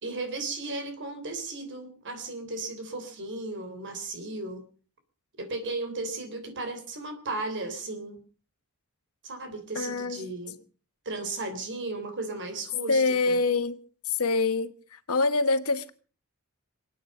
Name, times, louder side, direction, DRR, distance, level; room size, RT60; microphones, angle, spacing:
voice 1, 0.0-4.6 5.4-8.2 9.2-10.5 11.0-13.4, right 2 dB, 55° right, 3.3 m, -35 dB
voice 2, 9.7-10.3 12.9-13.8 14.1-14.7 15.1-15.9, left 3 dB, 75° left, 1.3 m, -25 dB
27.0 x 9.2 x 5.2 m
head